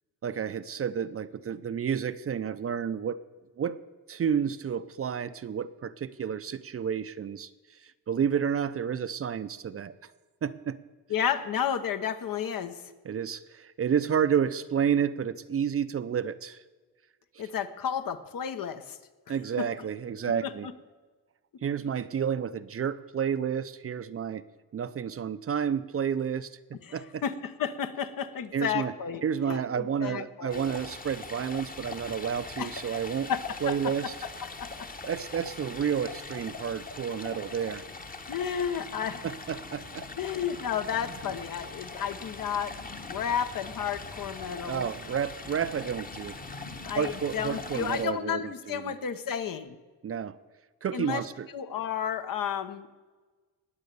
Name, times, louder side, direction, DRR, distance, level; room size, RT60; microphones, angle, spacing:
voice 1, 0.2-3.2 3.6-3.8 4.1-10.1 10.4-10.8 13.0-16.6 19.3-20.7 21.6-24.4 24.7-26.5 26.9-27.2 28.5-28.9 29.2-33.3 33.6-34.1 35.1-37.8 39.2-40.1 44.7-46.4 46.9-48.9 50.0-50.4 50.8-51.5, right 7 dB, 35° right, 13 dB, 0.6 m, -30 dB
voice 2, 11.1-12.8 17.4-19.0 19.6-19.9 20.4-20.7 26.8-30.6 32.6-33.9 34.4-34.9 38.3-39.2 40.2-44.9 46.8-49.8 50.9-51.2 51.5-52.9, left 8 dB, 60° left, 10 dB, 1.2 m, -32 dB
Stream, 30.5-48.1, left 3 dB, 25° left, 1.2 m, -42 dB
19.5 x 7.6 x 6.9 m, 1.3 s
cardioid pair, 125°, 38 cm